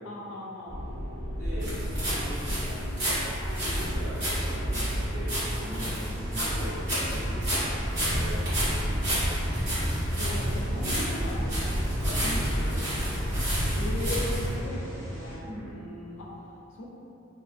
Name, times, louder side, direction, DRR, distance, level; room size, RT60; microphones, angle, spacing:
voice 1, 0.0-0.9 3.4-3.8 5.6-5.9 9.7-11.8 13.7-16.9, equal, 75° left, -3 dB, 0.5 m, -39 dB
sound 1, 0.7-14.5, equal, 10° left, 1.3 m, -31 dB
voice 2, 1.4-3.2 3.6-8.9 12.0-13.0 15.4-15.8, equal, 85° right, -10 dB, 1.2 m, -40 dB
sound 2, 1.6-14.5, equal, 70° right, 1.4 m, -33 dB
sound 3, 5.3-15.4, equal, 45° right, 0.8 m, -44 dB
2.8 x 2.4 x 2.5 m, 2.8 s
head